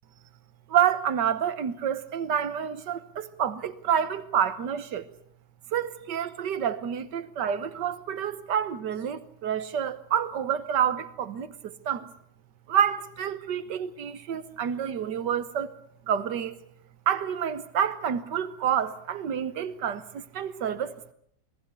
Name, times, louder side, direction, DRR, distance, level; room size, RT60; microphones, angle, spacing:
voice 1, 0.7-5.1 5.7-12.1 12.7-15.7 16.1-16.6 17.1-21.1, right 8 dB, 85° right, 1.8 m, -28 dB
25.5 x 18.5 x 8.2 m
omnidirectional pair, 1.8 m